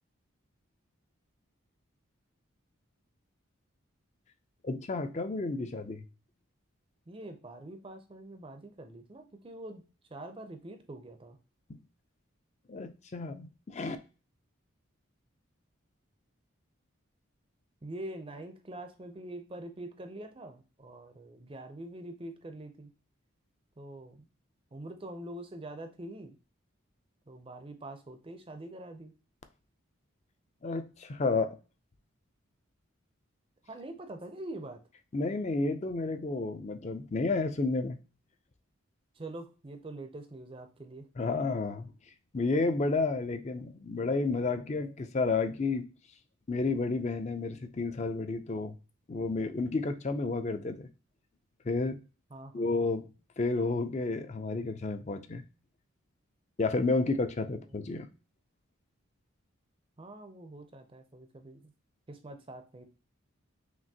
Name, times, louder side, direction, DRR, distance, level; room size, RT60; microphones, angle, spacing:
voice 1, 4.6-6.0 11.7-11.8 12.7-14.0 30.6-31.6 35.1-38.0 41.2-41.9 42.3-45.9 46.5-48.7 49.1-50.9 51.6-52.0 52.5-53.0 53.4-55.4 56.6-58.1, left 3 dB, 30° left, 0.4 m, -31 dB
voice 2, 7.1-9.8 10.1-11.4 17.8-22.9 23.8-24.3 24.7-26.3 27.3-29.1 33.7-34.8 39.1-41.1 52.3-52.7 60.0-61.7 62.1-62.9, right 1 dB, 25° right, 0.5 m, -44 dB
5.9 x 2.5 x 2.7 m
head